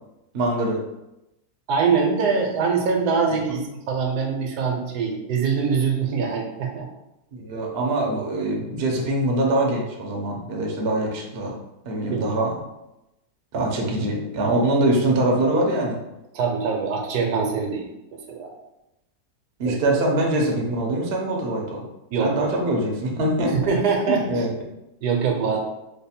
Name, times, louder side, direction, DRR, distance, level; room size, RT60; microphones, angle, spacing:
voice 1, 0.3-0.8 3.5-3.7 7.3-11.6 11.8-12.5 13.5-16.0 19.6-21.8 22.2-23.5 24.1-24.6, right 1 dB, 55° right, -1 dB, 0.6 m, -23 dB
voice 2, 1.7-3.6 3.9-6.9 12.1-12.2 16.3-18.5 19.7-19.8 22.1-22.3 23.5-24.3 25.0-25.6, right 5 dB, 75° right, 1 dB, 1.2 m, -23 dB
3.2 x 2.0 x 4.1 m, 0.92 s
omnidirectional pair, 1.8 m